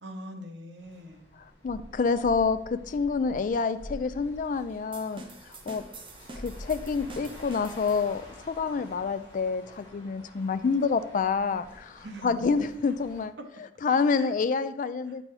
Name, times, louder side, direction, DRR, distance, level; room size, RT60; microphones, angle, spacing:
voice 1, 0.0-1.3 12.0-12.5 14.2-14.4 15.1-15.2, equal, 75° right, 4 dB, 1.0 m, -42 dB
sound 1, 0.8-13.3, equal, 30° left, 2.3 m, -48 dB
voice 2, 1.6-5.2 5.7-5.8 6.4-13.3 13.8-15.2, left 5 dB, 50° left, 11 dB, 0.4 m, -27 dB
sound 2, 4.9-8.4, right 2 dB, 30° right, 0.7 m, -46 dB
8.4 x 5.3 x 3.2 m, 0.74 s
head